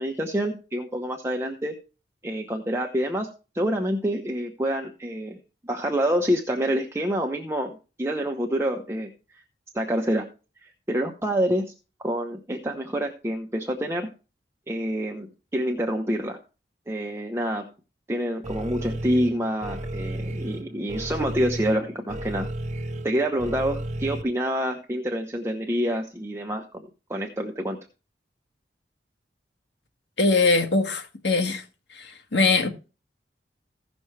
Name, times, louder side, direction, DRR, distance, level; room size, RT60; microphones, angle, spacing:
voice 1, 0.0-1.7 2.2-3.3 3.5-9.1 9.7-10.3 10.6-11.7 12.0-14.1 14.7-15.3 15.5-16.4 16.9-17.7 18.1-22.5 23.0-26.8 27.1-27.8, equal, 15° right, 0.9 m, -27 dB
sound 1, 18.4-24.2, right 1 dB, 45° right, 0.9 m, -33 dB
voice 2, 30.2-31.6 31.9-32.7, left 3 dB, 80° left, 1.5 m, -22 dB
16.0 x 6.1 x 3.3 m
head